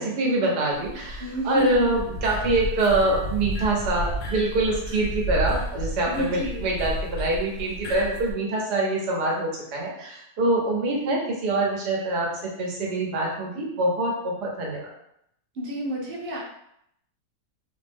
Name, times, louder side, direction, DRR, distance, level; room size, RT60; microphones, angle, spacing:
voice 1, 0.0-14.9, right 2 dB, 90° right, -2 dB, 1.5 m, -25 dB
sound 1, 0.7-8.3, equal, 80° left, 1.2 m, -32 dB
voice 2, 1.2-1.8 2.3-2.4 6.0-6.6 15.5-16.4, right 1 dB, 50° right, -2 dB, 0.7 m, -30 dB
4.1 x 2.0 x 3.5 m, 0.75 s
omnidirectional pair, 1.7 m